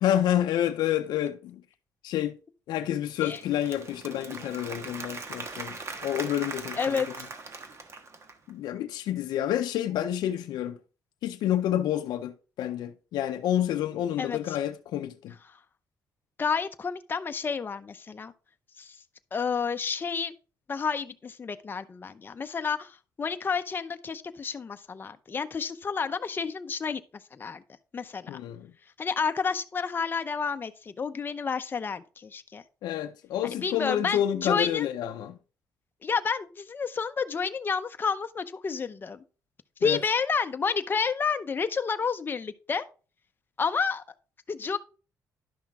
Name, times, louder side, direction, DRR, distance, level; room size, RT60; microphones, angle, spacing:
voice 1, 0.0-1.6 2.0-2.4 2.7-7.0 8.5-10.8 11.2-15.3 28.3-28.7 32.8-35.4 39.8-40.0, left 11 dB, 80° left, 0.6 m, -29 dB
Applause / Crowd, 3.1-8.5, right 3 dB, 40° right, 1.3 m, -40 dB
voice 2, 6.8-7.3 14.2-14.4 16.4-18.3 18.8-19.0 19.3-20.3 20.7-27.0 27.3-27.6 27.9-28.4 29.0-32.6 33.4-34.9 36.0-39.2 39.8-42.9 43.6-44.0 44.5-44.8, left 5 dB, 30° left, 0.6 m, -30 dB
11.0 x 5.8 x 3.6 m
cardioid pair, 110°, 7 cm